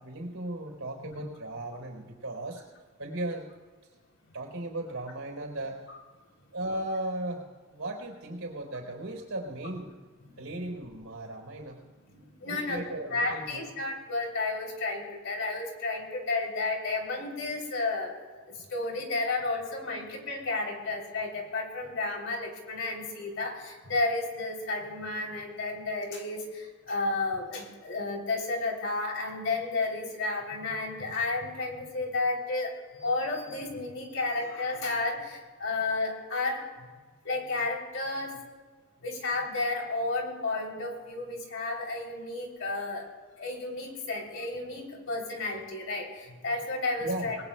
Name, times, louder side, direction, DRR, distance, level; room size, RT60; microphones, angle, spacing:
voice 1, 0.0-2.6 3.0-3.5 4.3-5.8 6.5-9.8 10.4-11.8 12.5-13.7 34.3-34.5 47.0-47.3, right 1 dB, 80° right, 2 dB, 3.9 m, -36 dB
voice 2, 10.2-10.6 11.6-32.7 33.0-36.9 37.2-38.4 39.0-43.1 43.4-47.4, left 3 dB, 65° left, 0 dB, 3.3 m, -32 dB
27.5 x 20.0 x 2.3 m, 1.4 s
head